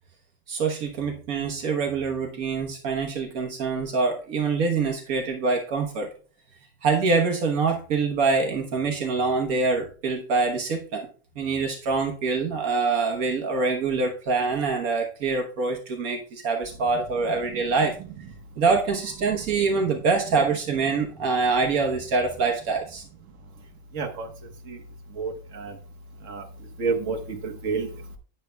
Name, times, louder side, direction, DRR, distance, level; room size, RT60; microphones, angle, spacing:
voice 1, 0.5-6.1 6.8-11.1 11.4-17.9 18.6-23.0, right 4 dB, 75° right, 2 dB, 1.5 m, -25 dB
voice 2, 23.9-24.3 24.7-24.8 25.2-25.7 26.3-26.4 26.8-27.2 27.4-27.9, right 5 dB, 60° right, 3 dB, 1.6 m, -28 dB
11.0 x 8.9 x 2.2 m, 0.39 s
omnidirectional pair, 1.5 m